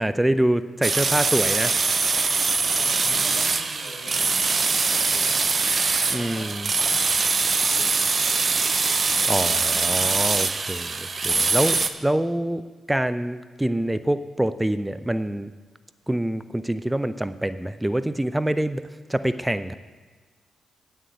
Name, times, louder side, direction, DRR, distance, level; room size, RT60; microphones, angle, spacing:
voice 1, 0.0-1.7 6.1-6.6 9.3-12.6 12.9-15.5 16.1-18.8 19.1-19.7, right 1 dB, 10° right, 12 dB, 0.5 m, -25 dB
sound 1, 0.8-11.9, right 4 dB, 45° right, 0.7 m, -23 dB
voice 2, 2.5-6.5 7.3-10.0, left 2 dB, 75° left, 0 dB, 1.9 m, -44 dB
9.0 x 6.5 x 8.0 m, 1.4 s
hypercardioid pair, 45°, 0 cm